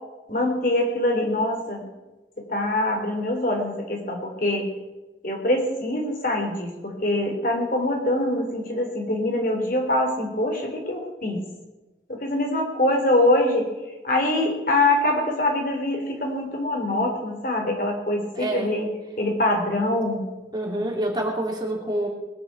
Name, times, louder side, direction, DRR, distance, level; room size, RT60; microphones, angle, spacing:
voice 1, 0.3-1.9 2.5-4.7 5.2-11.4 12.1-13.7 14.0-18.9 19.2-20.3, left 1 dB, 50° left, 2 dB, 3.7 m, -24 dB
voice 2, 18.3-18.7 20.5-22.1, right 1 dB, 25° right, 0 dB, 2.8 m, -27 dB
21.0 x 8.4 x 7.0 m, 1.1 s
head